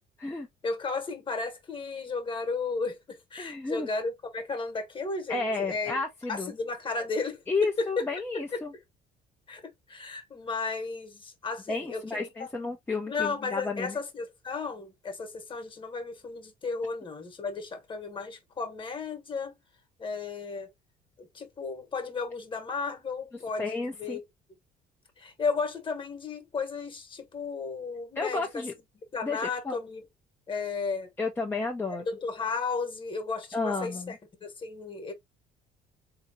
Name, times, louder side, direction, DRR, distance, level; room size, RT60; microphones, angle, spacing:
voice 1, 0.6-6.0 6.3-7.4 8.0-8.1 8.5-8.6 9.5-9.6 9.9-12.5 13.1-19.5 20.0-20.7 21.3-24.2 25.2-28.6 29.1-30.0 30.5-31.1 32.1-35.1, left 4 dB, 30° left, 1.3 m, -34 dB
voice 2, 3.4-3.9 5.3-6.5 7.5-8.7 11.7-14.0 23.6-24.2 28.2-28.7 29.2-29.8 31.2-32.1 33.5-34.2, left 3 dB, 15° left, 0.6 m, -32 dB
3.6 x 2.9 x 2.7 m
cardioid pair, 110°, 17 cm